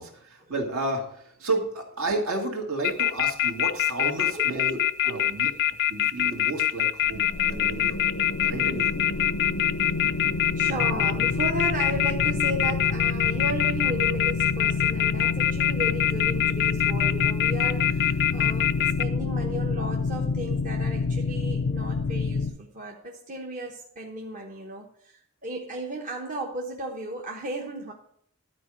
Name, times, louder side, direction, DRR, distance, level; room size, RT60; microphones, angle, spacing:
voice 1, 0.0-8.0 8.4-9.0, right 2 dB, 70° right, 1 dB, 2.1 m, -32 dB
sound 1, 2.8-19.0, left 11 dB, 50° left, 0.4 m, -23 dB
voice 2, 4.0-4.7 5.1-5.3 9.2-9.3 10.2-27.9, right 1 dB, 40° right, 0 dB, 1.0 m, -35 dB
sound 2, 7.0-22.5, left 3 dB, 80° left, 0.7 m, -28 dB
12.0 x 4.5 x 6.2 m, 0.65 s
head